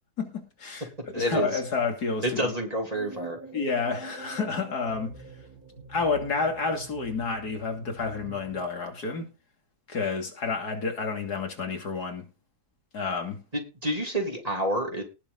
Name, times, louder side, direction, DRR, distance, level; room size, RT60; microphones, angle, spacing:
voice 1, 0.2-0.9 1.1-2.5 3.5-5.1 5.9-9.3 9.9-12.3 12.9-13.4, left 4 dB, 75° left, 3.1 m, -30 dB
voice 2, 1.1-1.6 2.2-3.4 13.5-15.0, right 1 dB, 20° right, 3.2 m, -28 dB
sound 1, 2.9-8.6, right 3 dB, 65° right, 4.2 m, -45 dB
19.0 x 6.9 x 4.0 m
omnidirectional pair, 1.7 m